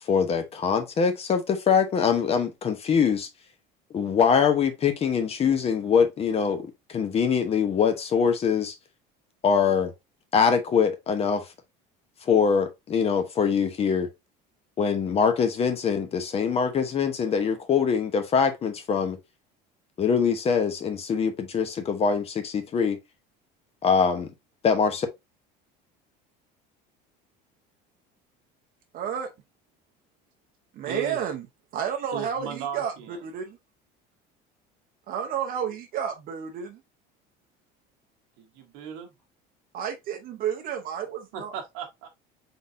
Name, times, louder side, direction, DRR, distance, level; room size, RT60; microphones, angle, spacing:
voice 1, 0.0-3.3 3.9-8.8 9.4-9.9 10.3-11.5 12.2-14.1 14.8-19.2 20.0-23.0 23.8-24.3 24.6-25.1, left 6 dB, 30° left, 0.8 m, -23 dB
voice 2, 28.9-29.3 30.7-31.4 31.7-33.6 35.1-36.8 39.7-41.5, right 8 dB, 45° right, 0.7 m, -31 dB
voice 3, 30.8-31.2 32.1-33.2 38.4-39.1 41.3-42.1, right 8 dB, 80° right, 1.1 m, -36 dB
3.9 x 3.7 x 2.6 m
cardioid pair, 135°, 20 cm